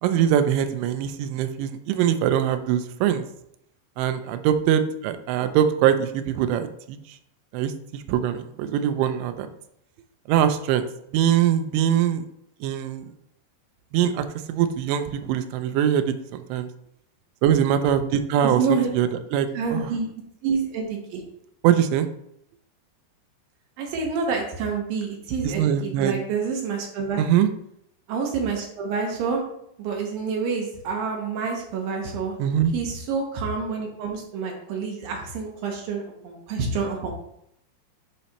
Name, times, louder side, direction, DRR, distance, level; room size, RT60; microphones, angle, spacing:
voice 1, 0.0-3.3 4.0-7.0 7.5-9.5 10.3-10.9 11.1-12.3 12.6-13.0 13.9-16.7 17.4-19.9 21.6-22.1 25.4-26.1 27.2-27.5 32.4-32.7, right 10 dB, 85° right, 9 dB, 2.8 m, -22 dB
voice 2, 18.4-18.9 19.5-20.1 20.4-21.2 23.8-27.2 28.1-29.4 29.8-32.3 32.7-37.1, right 5 dB, 70° right, 0 dB, 2.3 m, -28 dB
10.0 x 4.2 x 2.9 m, 0.74 s
omnidirectional pair, 5.0 m